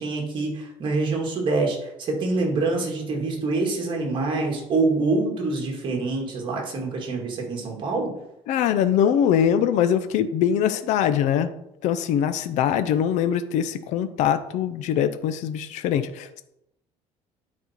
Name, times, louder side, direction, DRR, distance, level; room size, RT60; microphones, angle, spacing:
voice 1, 0.0-8.1, right 3 dB, 40° right, 0 dB, 2.1 m, -25 dB
voice 2, 8.5-11.5 11.8-16.4, left 9 dB, 70° left, 11 dB, 0.6 m, -22 dB
9.6 x 4.3 x 4.4 m, 0.82 s
cardioid pair, 150°, 13 cm